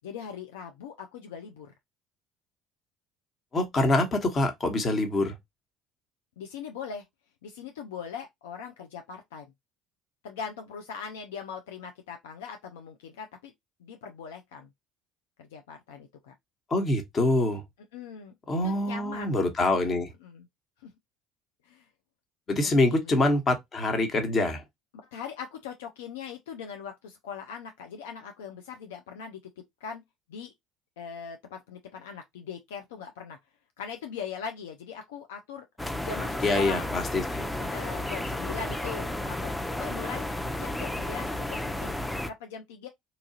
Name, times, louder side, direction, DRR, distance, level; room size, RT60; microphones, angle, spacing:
voice 1, 0.0-1.7 6.4-7.0 7.4-9.5 10.2-13.5 13.8-14.7 15.4-16.3 17.9-18.3 18.6-19.4 20.2-20.5 20.8-20.9 21.6-21.9 22.6-23.2 25.0-30.0 30.3-30.5 31.0-33.4 33.8-35.6 36.0-36.9 37.6-41.9 42.2-42.9, left 6 dB, 80° left, 0.4 m, -40 dB
voice 2, 3.5-5.3 16.7-17.6 18.5-20.1 22.5-24.6 36.4-37.5, left 2 dB, 35° left, 1.1 m, -25 dB
sound 1, 35.8-42.3, left 1 dB, 10° left, 0.5 m, -32 dB
2.8 x 2.4 x 2.8 m
hypercardioid pair, 65°, 0 cm